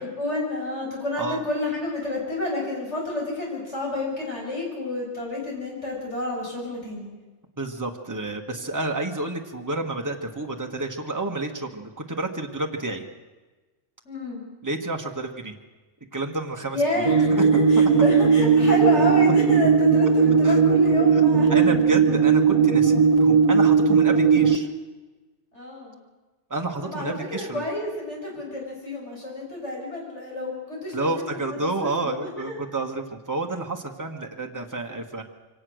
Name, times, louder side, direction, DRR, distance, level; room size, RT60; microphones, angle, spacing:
voice 1, 0.0-7.1 14.0-14.4 16.7-21.5 25.5-26.0 26.8-31.2 31.8-32.6, left 1 dB, 70° left, -2 dB, 6.7 m, -29 dB
voice 2, 7.6-13.0 14.6-15.5 16.1-17.4 17.8-17.9 20.4-20.6 21.1-21.2 21.5-24.7 26.5-27.6 30.9-35.2, right 2 dB, 15° right, 3 dB, 1.6 m, -30 dB
sound 1, 17.0-24.6, right 5 dB, 30° right, 1.3 m, -18 dB
24.0 x 17.5 x 6.5 m, 1.2 s
omnidirectional pair, 1.2 m